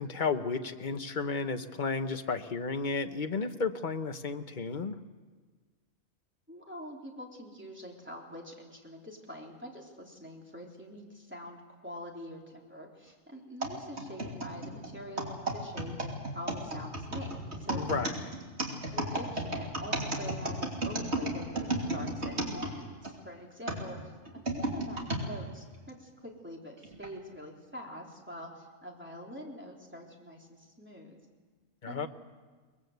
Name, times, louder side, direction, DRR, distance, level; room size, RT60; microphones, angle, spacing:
voice 1, 0.0-5.0 17.7-18.3 31.8-32.1, left 4 dB, 40° left, 8 dB, 1.1 m, -33 dB
voice 2, 6.5-17.8 18.9-24.0 24.3-31.2 31.9-32.1, equal, 10° right, -1 dB, 3.6 m, -45 dB
sound 1, 13.6-23.1 23.7-25.3 25.9-26.0 26.8-27.1, right 2 dB, 55° right, 3.3 m, -34 dB
23.0 x 21.0 x 8.0 m, 1.4 s
omnidirectional pair, 1.4 m